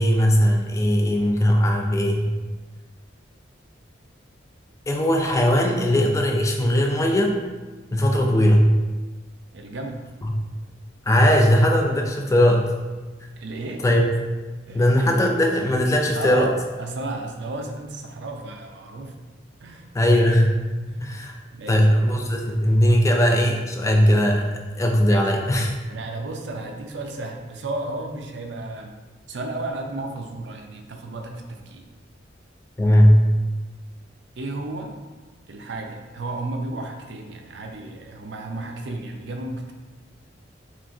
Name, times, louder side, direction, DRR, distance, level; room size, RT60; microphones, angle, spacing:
voice 1, 0.0-2.3 4.9-7.4 7.9-8.7 10.2-10.3 11.1-12.7 13.8-14.0 14.7-16.5 19.9-20.6 21.0-21.3 21.7-24.5 24.8-25.7 32.8-33.2, equal, 15° left, 2 dB, 0.3 m, -19 dB
voice 2, 9.5-10.0 13.4-13.8 14.7-14.9 16.1-16.5 16.8-19.2 19.6-19.9 20.9-21.1 21.5-21.9 25.1-25.3 25.9-29.0 29.3-31.9 34.4-34.9 35.5-39.7, right 2 dB, 65° right, 3 dB, 0.5 m, -33 dB
5.9 x 2.4 x 2.6 m, 1.3 s
head